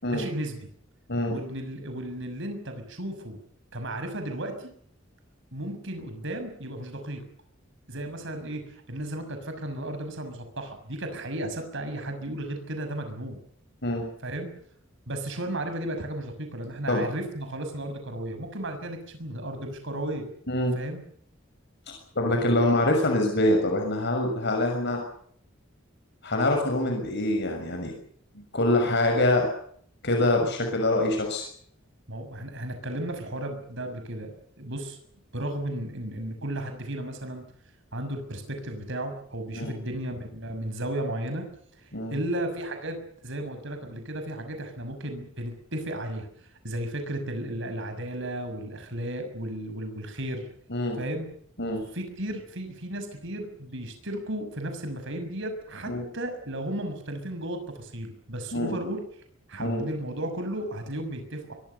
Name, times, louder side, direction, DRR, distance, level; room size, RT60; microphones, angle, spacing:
voice 1, 0.1-0.6 1.3-3.4 3.7-4.7 5.5-7.2 7.9-13.4 14.2-14.5 15.1-20.3 20.7-21.0 32.1-35.0 35.3-37.4 37.9-41.4 41.7-43.0 43.2-46.3 46.6-50.4 51.0-51.3 51.9-59.0 59.5-61.5, right 1 dB, 65° right, 7 dB, 6.2 m, -34 dB
voice 2, 21.9-25.0 26.2-27.9 28.5-29.5 30.0-31.5 39.5-39.7 41.9-42.2 50.7-51.0 51.6-51.8 55.9-56.1 58.5-58.8 59.6-59.8, left 1 dB, 60° left, 3 dB, 6.3 m, -25 dB
24.5 x 23.0 x 6.9 m, 0.63 s
head